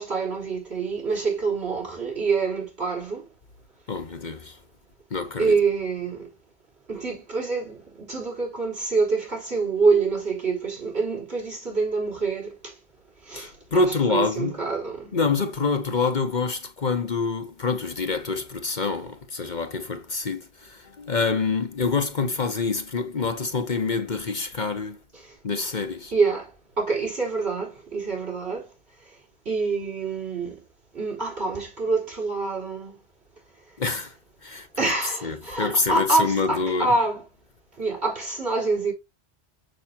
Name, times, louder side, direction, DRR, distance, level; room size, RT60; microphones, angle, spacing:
voice 1, 0.0-3.2 5.4-6.3 6.9-12.7 13.3-15.1 25.1-25.2 26.1-26.5 26.8-28.6 29.5-30.6 30.9-33.0 34.8-37.2 37.8-38.9, right 4 dB, 70° right, 4.3 m, -26 dB
voice 2, 3.9-4.6 5.1-5.6 13.3-14.5 15.1-25.0 25.4-26.1 33.8-34.1 34.4-34.7 35.2-36.9, left 4 dB, 45° left, 1.0 m, -26 dB
7.0 x 6.5 x 2.8 m
omnidirectional pair, 1.1 m